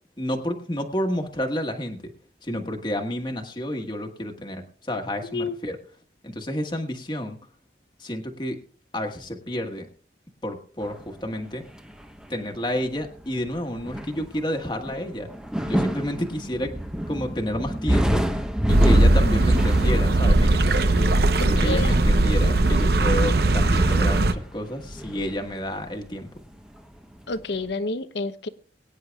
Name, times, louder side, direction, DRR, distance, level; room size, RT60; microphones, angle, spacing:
voice 1, 0.2-2.1 2.4-5.8 6.2-7.4 8.0-8.6 8.9-9.9 10.4-11.6 12.3-15.3 15.6-16.7 17.1-18.2 18.7-21.1 21.4-26.3, equal, 25° left, 3 dB, 1.5 m, -30 dB
sound 1, 10.8-26.7 27.0-27.6, equal, 5° right, 0.9 m, -29 dB
sound 2, 18.7-24.3, right 2 dB, 55° right, 0.8 m, -19 dB
voice 2, 21.4-21.9 27.3-28.5, left 3 dB, 65° left, 12 dB, 0.8 m, -29 dB
23.0 x 9.8 x 2.3 m, 0.42 s
head